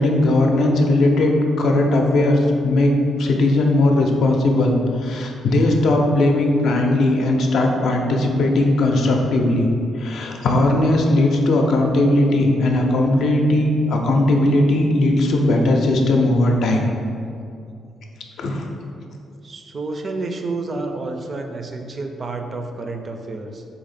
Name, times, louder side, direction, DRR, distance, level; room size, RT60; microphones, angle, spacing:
voice 1, 0.0-2.9 3.2-9.7 10.0-16.9 18.4-18.6, left 2 dB, 70° left, 1 dB, 0.5 m, -18 dB
voice 2, 19.4-23.6, right 3 dB, 40° right, 5 dB, 0.4 m, -29 dB
4.0 x 2.8 x 4.1 m, 2.5 s
cardioid pair, 105°, 0 cm